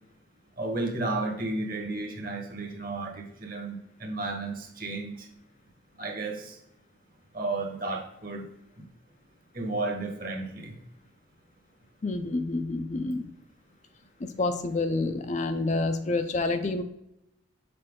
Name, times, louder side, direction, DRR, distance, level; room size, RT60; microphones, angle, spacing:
voice 1, 0.6-5.3 6.0-6.6 7.3-8.5 8.8-8.9 9.5-10.8, right 2 dB, 45° right, 2 dB, 1.3 m, -33 dB
voice 2, 12.0-13.3 14.2-16.8, left 2 dB, 35° left, 8 dB, 0.4 m, -28 dB
6.7 x 4.4 x 3.6 m, 0.80 s
head